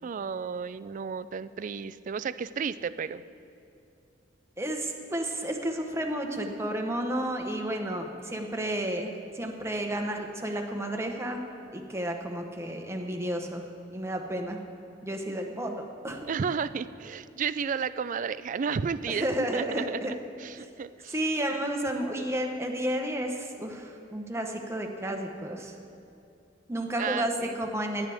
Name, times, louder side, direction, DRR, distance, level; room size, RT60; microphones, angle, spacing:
voice 1, 0.0-3.2 16.3-19.3 19.5-20.0 20.4-21.1 27.0-27.6, right 6 dB, 45° right, 15 dB, 0.3 m, -32 dB
voice 2, 4.6-11.5 11.7-13.6 13.9-14.6 15.0-16.3 19.1-20.1 21.1-25.7 26.7-28.1, right 1 dB, 15° right, 3 dB, 1.0 m, -32 dB
18.5 x 10.5 x 3.5 m, 2.7 s
head